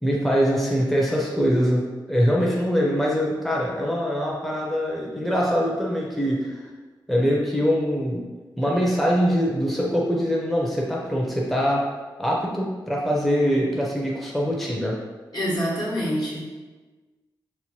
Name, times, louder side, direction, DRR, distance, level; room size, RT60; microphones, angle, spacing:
voice 1, 0.0-6.6 7.1-8.2 8.6-11.8 12.2-14.9, equal, ahead, -3 dB, 0.6 m, -23 dB
voice 2, 15.3-16.5, equal, 55° left, -7 dB, 1.0 m, -26 dB
3.0 x 2.1 x 3.0 m, 1.3 s
cardioid pair, 45°, 8 cm